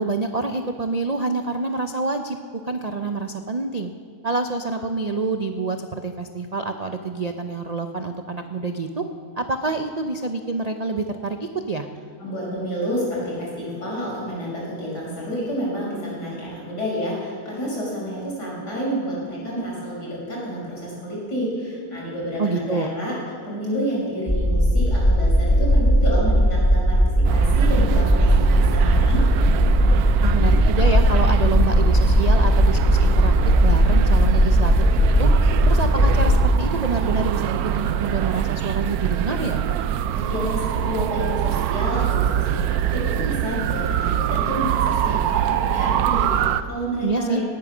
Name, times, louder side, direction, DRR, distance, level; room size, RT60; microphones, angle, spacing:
voice 1, 0.0-2.4 2.6-3.9 4.2-9.0 9.4-11.9 22.4-22.9 30.2-33.3 33.6-34.7 35.0-35.3 35.7-39.6 47.0-47.4, right 3 dB, 55° right, 6 dB, 0.4 m, -27 dB
voice 2, 12.2-23.1 23.4-27.0 27.3-29.2 40.1-47.4, equal, 85° left, -4 dB, 5.6 m, -29 dB
sound 1, 24.3-36.4, equal, 5° left, 1.7 m, -17 dB
sound 2, 27.2-46.6, right 10 dB, 70° right, 1.0 m, -24 dB
18.5 x 9.6 x 6.1 m, 2.3 s
omnidirectional pair, 1.7 m